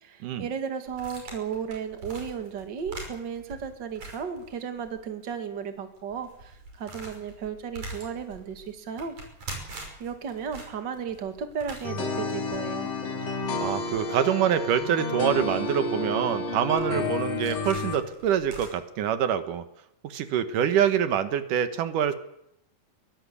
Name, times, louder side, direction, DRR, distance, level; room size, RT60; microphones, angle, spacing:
voice 1, 0.0-9.2 9.7-12.9, right 7 dB, 35° right, 7 dB, 2.4 m, -35 dB
sound 1, 0.9-5.0 5.3-5.4 5.9-18.7, right 2 dB, 65° right, 7.0 m, -44 dB
sound 2, 11.8-18.0, left 3 dB, 50° left, 4.0 m, -30 dB
voice 2, 13.6-19.6 20.0-22.1, right 9 dB, 80° right, 11 dB, 2.7 m, -25 dB
22.5 x 18.0 x 8.4 m, 0.79 s
omnidirectional pair, 3.7 m